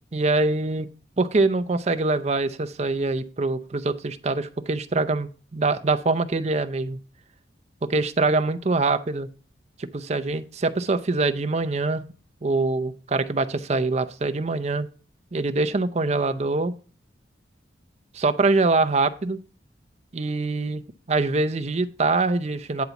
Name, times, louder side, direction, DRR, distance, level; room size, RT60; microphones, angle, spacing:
voice 1, 0.1-0.9 1.2-7.0 7.8-9.3 9.8-12.0 12.4-14.9 15.3-16.7 18.1-19.4 20.1-20.8 21.1-22.8, right 3 dB, 35° right, 10 dB, 0.5 m, -24 dB
9.4 x 4.0 x 5.8 m, 0.39 s
head